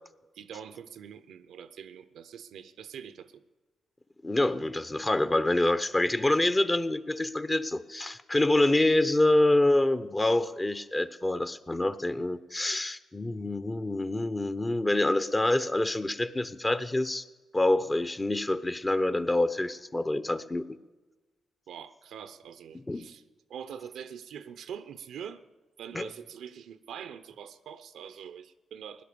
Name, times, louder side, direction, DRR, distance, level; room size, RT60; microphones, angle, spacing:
voice 1, 0.3-3.4 21.7-23.2 23.5-25.4 25.8-29.0, right 8 dB, 75° right, 12 dB, 0.7 m, -44 dB
voice 2, 4.2-17.2 17.5-20.8 22.9-23.0 25.9-26.1, left 1 dB, 25° left, 13 dB, 0.9 m, -26 dB
17.0 x 10.5 x 7.0 m, 1.2 s
supercardioid pair, 50°, 0 cm